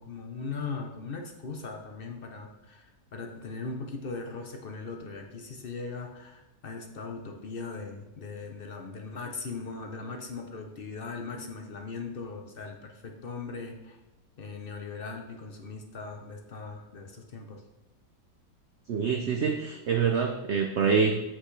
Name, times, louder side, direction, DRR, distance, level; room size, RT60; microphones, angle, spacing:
voice 1, 0.0-14.0 14.4-17.6, left 4 dB, 55° left, 3 dB, 0.6 m, -39 dB
voice 2, 18.9-21.2, right 6 dB, 85° right, 4 dB, 0.6 m, -26 dB
7.9 x 6.0 x 3.2 m, 1.0 s
omnidirectional pair, 1.9 m